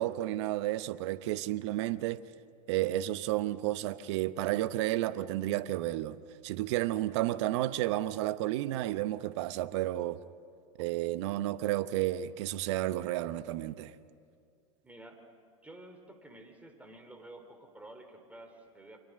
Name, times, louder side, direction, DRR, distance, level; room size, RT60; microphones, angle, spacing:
voice 1, 0.0-2.2 2.7-6.2 6.4-10.2 10.8-13.9, right 15 dB, 55° right, 1.0 m, -31 dB
voice 2, 14.8-15.2 15.6-19.0, right 1 dB, 10° right, 4.0 m, -51 dB
30.0 x 25.5 x 6.5 m
figure-of-eight pair, 90°, 17 cm